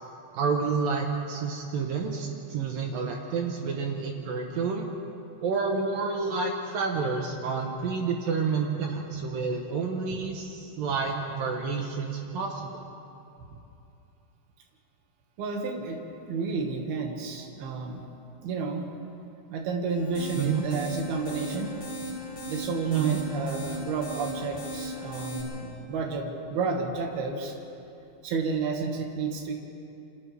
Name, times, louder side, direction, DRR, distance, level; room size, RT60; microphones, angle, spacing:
voice 1, 0.3-4.9 5.4-12.7 20.4-20.6 22.9-23.2, right 5 dB, 80° right, 1 dB, 2.0 m, -29 dB
voice 2, 15.4-18.0 18.4-18.9 19.5-21.7 22.5-27.6 28.2-29.5, right 4 dB, 60° right, 2 dB, 3.3 m, -31 dB
sound 1, 19.9-25.4, equal, 30° left, 7.7 m, -37 dB
29.0 x 26.0 x 3.5 m, 2.8 s
omnidirectional pair, 5.7 m